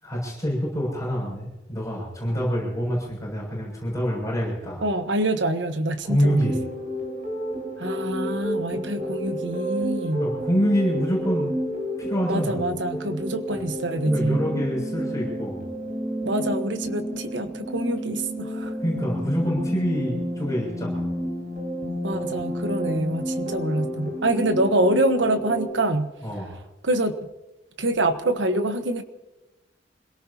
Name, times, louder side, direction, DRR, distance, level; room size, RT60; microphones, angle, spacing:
voice 1, 0.0-4.8 6.0-6.5 10.1-11.5 12.0-12.6 14.1-15.6 18.8-21.1 26.2-26.6, equal, 20° left, -3 dB, 7.0 m, -26 dB
voice 2, 4.8-6.6 7.8-10.2 12.3-14.4 16.2-18.7 22.0-26.1 26.8-27.1 27.8-29.0, right 1 dB, 90° right, 8 dB, 1.3 m, -25 dB
sound 1, 6.2-25.7, equal, 50° right, 5.2 m, -30 dB
26.5 x 18.0 x 2.9 m, 1.0 s
head